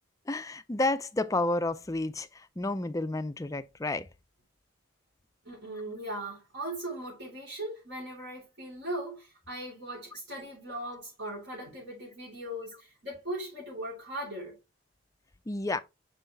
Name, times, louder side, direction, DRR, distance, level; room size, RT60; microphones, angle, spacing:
voice 1, 0.3-4.1 15.5-15.8, left 2 dB, 15° left, 0.4 m, -30 dB
voice 2, 5.4-14.6, right 1 dB, 65° right, 3.8 m, -39 dB
5.5 x 5.4 x 3.4 m
head